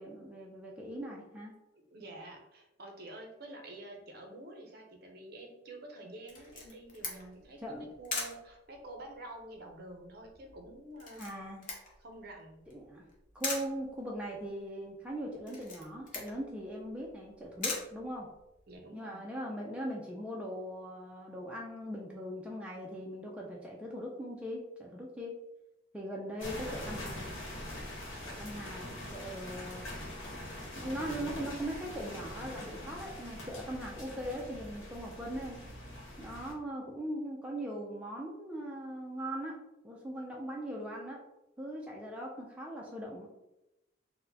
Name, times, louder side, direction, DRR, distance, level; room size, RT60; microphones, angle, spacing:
voice 1, 0.0-1.5 7.6-7.9 11.2-11.7 12.7-13.1 13.3-18.3 18.9-25.3 25.9-27.3 28.2-29.9 30.8-35.6 36.2-39.5 39.8-41.2 41.6-43.3, equal, 5° right, -3 dB, 0.3 m, -40 dB
voice 2, 1.8-11.3 12.0-12.6 18.7-19.2 28.4-28.8, right 1 dB, 50° right, 2 dB, 0.6 m, -48 dB
Camera, 6.3-18.8, left 3 dB, 40° left, 0.7 m, -43 dB
sound 1, 26.4-36.5, left 1 dB, 85° left, 1.0 m, -43 dB
4.1 x 2.1 x 2.7 m, 0.93 s
head